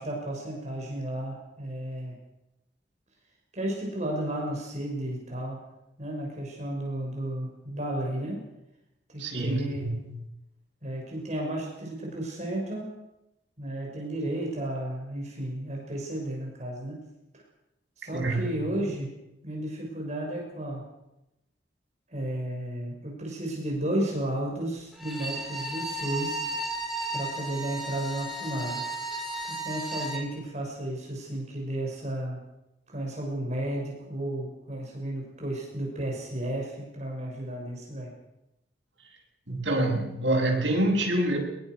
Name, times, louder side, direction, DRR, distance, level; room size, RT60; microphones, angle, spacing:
voice 1, 0.0-2.2 3.5-5.6 6.0-8.4 9.1-9.9 10.8-12.9 13.6-17.1 17.3-17.4 18.0-19.1 19.4-20.9 22.1-26.4 27.1-28.8 29.4-32.4 32.9-38.1, right 1 dB, 40° right, -1 dB, 6.3 m, -33 dB
voice 2, 9.2-10.2 18.0-18.6 39.5-41.4, right 1 dB, 80° right, -1 dB, 7.6 m, -26 dB
Bowed string instrument, 24.9-30.3, right 1 dB, ahead, 4.6 m, -34 dB
23.0 x 22.0 x 6.4 m, 0.91 s
head